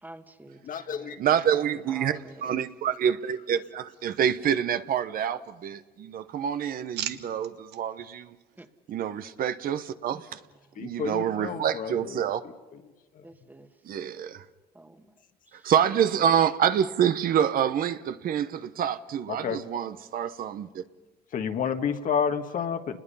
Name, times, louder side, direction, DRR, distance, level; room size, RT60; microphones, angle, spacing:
voice 1, 0.0-1.1 1.6-2.6 8.6-8.7 10.1-10.3 13.2-13.7 14.7-15.1, right 1 dB, 10° right, 8 dB, 1.5 m, -47 dB
voice 2, 0.6-1.2 7.1-7.2 10.8-12.2 13.1-13.2 19.3-19.7 21.3-23.0, left 7 dB, 55° left, 7 dB, 1.6 m, -30 dB
voice 3, 1.2-8.3 8.9-10.4 10.8-12.4 13.8-14.4 15.6-20.8, right 9 dB, 60° right, 12 dB, 1.0 m, -27 dB
sound 1, 3.9-5.0 5.4-6.0 6.4-7.8 8.4-8.7, right 12 dB, 80° right, 1.2 m, -41 dB
30.0 x 21.0 x 5.6 m, 1.2 s
cardioid pair, 110°, 17 cm